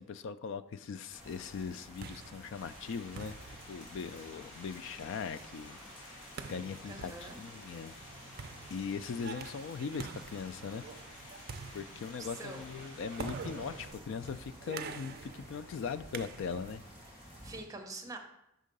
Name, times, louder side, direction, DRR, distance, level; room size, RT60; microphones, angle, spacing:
voice 1, 0.0-3.4 3.7-6.2 6.5-7.9 8.7-10.8 11.7-16.8, left 6 dB, 60° left, 13 dB, 0.3 m, -40 dB
sound 1, 1.1-17.6, equal, 20° left, 2.1 m, -54 dB
sound 2, 1.7-16.8, right 5 dB, 45° right, 0.4 m, -47 dB
sound 3, 2.5-13.9, left 1 dB, 80° left, 2.0 m, -53 dB
voice 2, 6.9-7.4 12.2-12.7 17.4-18.2, right 2 dB, 15° right, 2 dB, 0.7 m, -45 dB
5.5 x 3.7 x 5.2 m, 0.84 s
head